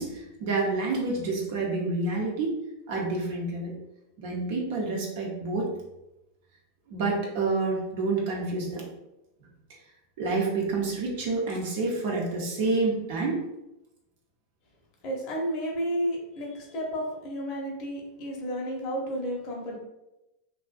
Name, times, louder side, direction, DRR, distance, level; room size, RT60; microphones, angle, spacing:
voice 1, 0.0-2.6 2.9-3.7 4.2-5.7 6.9-8.8 10.2-13.4, right 3 dB, 65° right, -2 dB, 0.7 m, -28 dB
voice 2, 15.0-19.8, equal, 50° left, -2 dB, 0.7 m, -32 dB
2.6 x 2.1 x 2.4 m, 0.92 s
hypercardioid pair, 95°, 0 cm